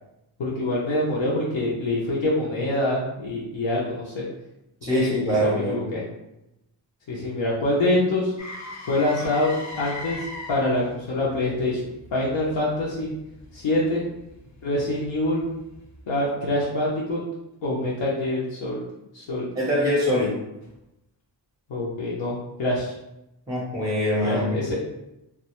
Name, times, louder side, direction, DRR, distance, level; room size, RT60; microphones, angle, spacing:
voice 1, 0.4-4.2 4.8-5.1 5.4-6.0 7.1-8.3 8.9-10.2 10.5-13.1 13.5-14.0 14.6-15.4 16.1-17.2 17.6-18.8 19.1-19.5 21.7-22.9 24.2-24.8, left 1 dB, 80° left, -6 dB, 0.6 m, -25 dB
voice 2, 4.8-5.8 19.6-20.3 23.5-24.6, equal, 10° right, -5 dB, 0.5 m, -23 dB
Motor vehicle (road), 8.4-16.3 20.6-20.8, left 2 dB, 40° left, 0.5 m, -41 dB
2.3 x 2.2 x 2.8 m, 0.90 s
wide cardioid pair, 130°, 44 cm